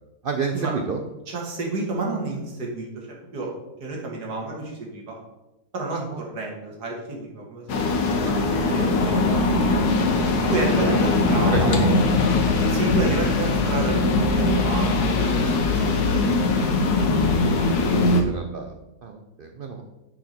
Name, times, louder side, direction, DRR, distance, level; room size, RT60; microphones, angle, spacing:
voice 1, 0.2-1.0 5.9-6.2 8.2-9.2 10.7-11.0 11.4-12.0 18.3-18.7 19.0-19.8, right 4 dB, 65° right, 3 dB, 0.5 m, -29 dB
voice 2, 1.3-3.5 3.8-5.2 5.7-7.9 8.2-10.0 10.5-11.7 12.7-16.3 16.6-17.1 17.3-17.7, right 2 dB, 85° right, -1 dB, 2.1 m, -31 dB
sound 1, 7.7-18.2, left 3 dB, 75° left, 1.4 m, -21 dB
9.1 x 4.9 x 4.3 m, 0.97 s
omnidirectional pair, 1.7 m